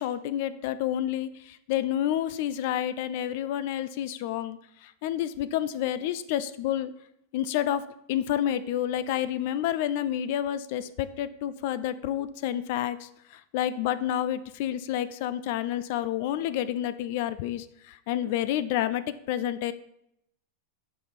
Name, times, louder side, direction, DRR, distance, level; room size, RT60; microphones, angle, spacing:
voice 1, 0.0-4.6 5.0-6.9 7.3-7.8 8.1-13.1 13.5-19.7, left 11 dB, 60° left, 14 dB, 0.3 m, -29 dB
7.3 x 4.3 x 3.4 m, 0.77 s
hypercardioid pair, 110°, 0 cm